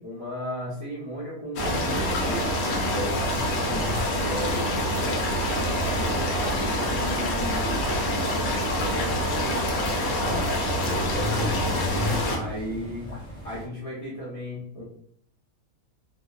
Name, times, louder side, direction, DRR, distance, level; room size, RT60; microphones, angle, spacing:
voice 1, 0.0-2.6 2.9-5.3 5.7-9.6 12.3-13.1 13.4-14.8, equal, 35° left, -9 dB, 0.7 m, -36 dB
sound 1, 1.6-12.4, equal, 70° left, 0.9 m, -26 dB
sound 2, 3.0-13.7, equal, 5° right, 0.7 m, -40 dB
voice 2, 10.8-12.5, left 3 dB, 70° right, 2 dB, 1.0 m, -31 dB
2.6 x 2.0 x 2.4 m, 0.67 s
omnidirectional pair, 1.5 m